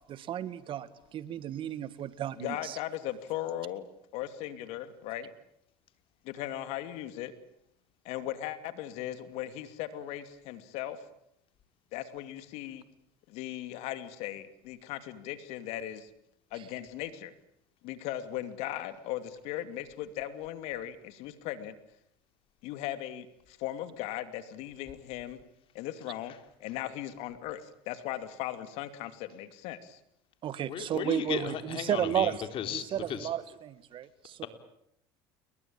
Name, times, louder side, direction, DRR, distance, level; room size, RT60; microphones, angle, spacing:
voice 1, 0.1-2.8 30.4-32.4 32.7-34.5, right 10 dB, 45° right, 14 dB, 2.0 m, -33 dB
voice 2, 2.4-3.9 4.1-5.3 6.2-7.3 8.0-11.0 11.9-12.8 13.3-16.1 16.5-17.3 17.8-21.7 22.6-25.4 25.7-26.3 26.6-30.0, left 13 dB, 65° left, 11 dB, 2.7 m, -38 dB
voice 3, 30.7-33.3, left 9 dB, 50° left, 8 dB, 4.0 m, -36 dB
29.5 x 21.5 x 8.9 m, 0.77 s
supercardioid pair, 95°, 12 cm